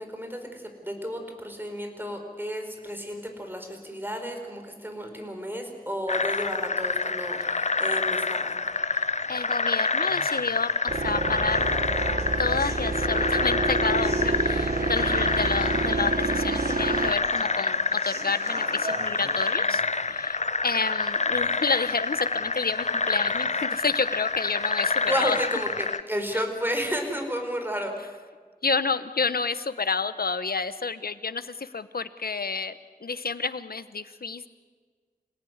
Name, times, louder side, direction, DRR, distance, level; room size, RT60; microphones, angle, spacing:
voice 1, 0.0-8.5 25.0-27.9, equal, 15° right, 4 dB, 5.0 m, -32 dB
sound 1, 6.1-26.0, left 4 dB, 50° left, 0.7 m, -27 dB
voice 2, 8.9-11.7 12.4-25.4 26.3-26.4 28.6-34.5, left 4 dB, 75° left, 13 dB, 1.0 m, -30 dB
sound 2, 10.9-17.1, right 3 dB, 70° right, 1.5 m, -28 dB
Human voice, 11.5-19.5, right 1 dB, 45° right, 2.6 m, -42 dB
27.5 x 18.0 x 9.6 m, 1.5 s
wide cardioid pair, 55°, 16 cm